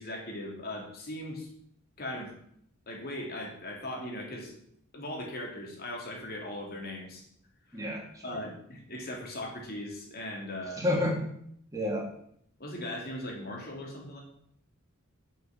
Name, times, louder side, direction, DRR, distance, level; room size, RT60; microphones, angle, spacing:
voice 1, 0.0-1.5 2.0-2.3 2.9-4.6 4.9-7.2 7.7-7.9 8.2-10.8 12.6-14.2, left 1 dB, 45° left, 0 dB, 3.2 m, -39 dB
voice 2, 7.7-8.4 10.8-11.2 11.7-12.1, left 1 dB, 15° right, -2 dB, 3.2 m, -30 dB
8.3 x 6.6 x 7.8 m, 0.68 s
head